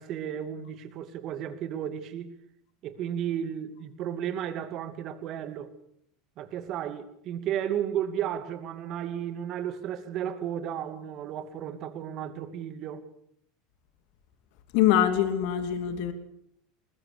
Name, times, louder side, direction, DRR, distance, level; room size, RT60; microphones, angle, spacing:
voice 1, 0.0-2.3 2.8-5.7 6.4-13.1, right 9 dB, 50° right, 2.6 m, -33 dB
voice 2, 14.7-16.1, left 10 dB, 65° left, 2.8 m, -23 dB
22.5 x 20.5 x 6.9 m
hypercardioid pair, 85°, 0 cm